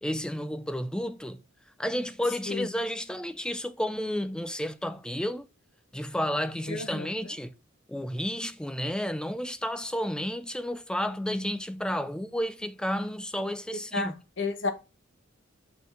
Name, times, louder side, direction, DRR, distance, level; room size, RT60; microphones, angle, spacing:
voice 1, 0.0-1.4 1.8-5.5 5.9-7.5 7.9-14.1, equal, 5° left, 0.4 m, -31 dB
voice 2, 6.7-7.1 13.9-14.1 14.4-14.7, left 3 dB, 65° left, 1.2 m, -30 dB
6.7 x 4.3 x 4.0 m
head